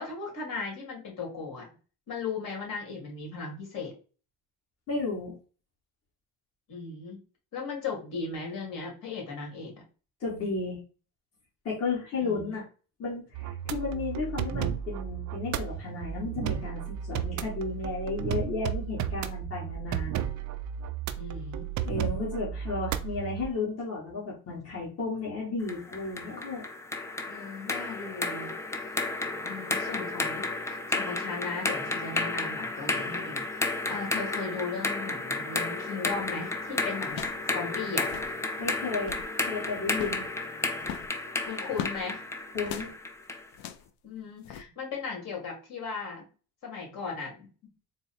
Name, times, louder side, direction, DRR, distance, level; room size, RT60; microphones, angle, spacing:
voice 1, 0.0-1.7 2.1-3.9 6.7-7.2 7.5-9.7 12.2-12.6 21.2-21.7 27.3-28.5 28.8-29.0 29.4-37.2 37.5-38.1 41.4-42.2 44.0-46.3 46.6-47.5, left 4 dB, 60° left, -1 dB, 2.1 m, -37 dB
voice 2, 4.9-5.4 10.2-10.8 11.6-12.6 13.0-20.1 21.8-26.6 38.6-40.3 42.5-42.9, left 4 dB, 40° left, -5 dB, 1.6 m, -33 dB
sound 1, 13.3-23.5, right 10 dB, 50° right, 0.5 m, -33 dB
sound 2, 25.7-43.5, left 2 dB, 10° left, 0.3 m, -32 dB
sound 3, 36.1-36.4 37.1-37.5 37.7-37.8 38.0-38.4 38.9-39.3 39.9-40.3 40.8-42.0 42.6-42.9 43.5-43.9 44.4-44.6, left 10 dB, 75° left, 0.6 m, -39 dB
3.8 x 2.1 x 4.1 m, 0.36 s
cardioid pair, 110°, 37 cm